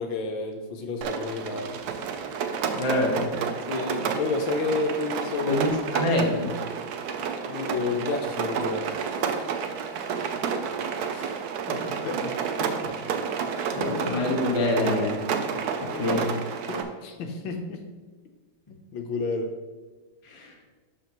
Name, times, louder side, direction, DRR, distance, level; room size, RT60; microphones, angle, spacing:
voice 1, 0.0-1.8 3.7-5.7 7.5-9.2 11.1-11.3 11.7-12.7 15.5-15.6 15.9-16.0 16.7-17.8 18.7-19.5, left 3 dB, 75° left, 4 dB, 1.5 m, -31 dB
Rain, 1.0-16.8, right 6 dB, 70° right, 0.9 m, -30 dB
voice 2, 2.7-3.4 5.5-6.6 12.8-12.9 13.8-15.2 15.8-16.2 20.2-20.5, left 2 dB, 20° left, -1 dB, 0.8 m, -26 dB
11.5 x 4.4 x 2.9 m, 1.3 s
omnidirectional pair, 2.2 m